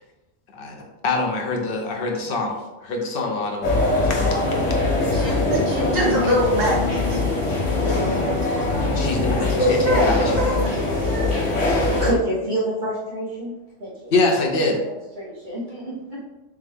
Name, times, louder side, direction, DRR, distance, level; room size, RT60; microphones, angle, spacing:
voice 1, 0.5-3.7 4.1-4.4 6.1-6.3 8.9-10.6 14.1-14.9, left 2 dB, 55° left, 2 dB, 0.8 m, -25 dB
sound 1, 3.6-12.1, left 2 dB, 70° left, 1.2 m, -22 dB
voice 2, 5.1-7.4 7.8-8.3 8.5-8.7 9.4-11.5, equal, 90° right, -3 dB, 1.7 m, -24 dB
voice 3, 12.0-13.5 13.8-14.1 14.8-16.2, right 1 dB, 40° right, -8 dB, 1.1 m, -27 dB
3.6 x 3.2 x 3.4 m, 1.0 s
omnidirectional pair, 1.3 m